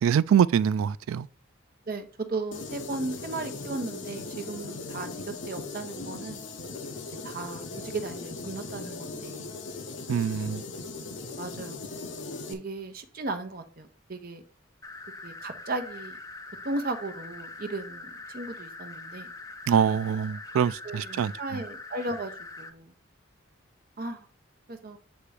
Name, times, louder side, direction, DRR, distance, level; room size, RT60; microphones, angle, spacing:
voice 1, 0.0-1.3 10.1-10.6 19.7-21.6, right 8 dB, 90° right, 0.3 m, -24 dB
voice 2, 1.9-5.1 5.5-6.4 7.2-9.5 11.4-11.9 12.5-14.4 15.2-16.2 16.6-19.3 20.8-22.3 22.6-22.9 24.0-24.3 24.7-25.0, right 2 dB, 45° right, 0.8 m, -36 dB
sound 1, 2.5-12.5, left 3 dB, 65° left, 0.8 m, -39 dB
sound 2, 14.8-22.7, left 3 dB, 15° left, 0.5 m, -43 dB
8.1 x 2.9 x 4.8 m
head